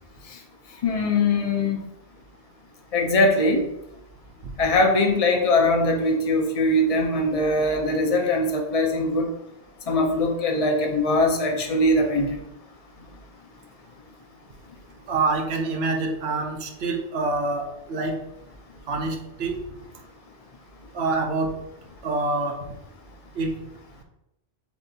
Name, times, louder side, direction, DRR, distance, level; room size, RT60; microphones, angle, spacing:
voice 1, 0.8-1.8 2.9-3.6 4.6-9.3 9.9-12.4, left 2 dB, 40° left, 2 dB, 0.7 m, -21 dB
voice 2, 15.1-18.2 18.9-19.6 20.9-21.5 22.0-22.7 23.4-23.5, right 3 dB, 75° right, 3 dB, 0.9 m, -26 dB
7.1 x 2.6 x 2.8 m, 0.86 s
omnidirectional pair, 1.1 m